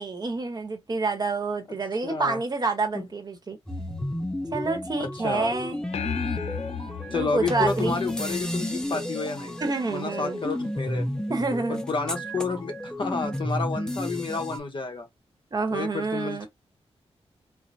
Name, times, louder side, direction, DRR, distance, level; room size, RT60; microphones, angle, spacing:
voice 1, 0.0-3.6 4.5-5.8 7.1-8.0 9.6-10.4 11.3-11.9 15.5-16.5, right 3 dB, 35° right, 1.0 m, -28 dB
voice 2, 2.0-2.4 2.9-3.1 5.0-5.5 7.1-9.6 9.9-11.1 11.7-15.1 15.7-16.5, left 4 dB, 50° left, 0.9 m, -30 dB
sound 1, 3.7-14.6, left 1 dB, 5° left, 0.7 m, -32 dB
sound 2, 5.9-8.6, left 8 dB, 80° left, 0.4 m, -34 dB
4.4 x 2.1 x 2.6 m
wide cardioid pair, 100°, 11 cm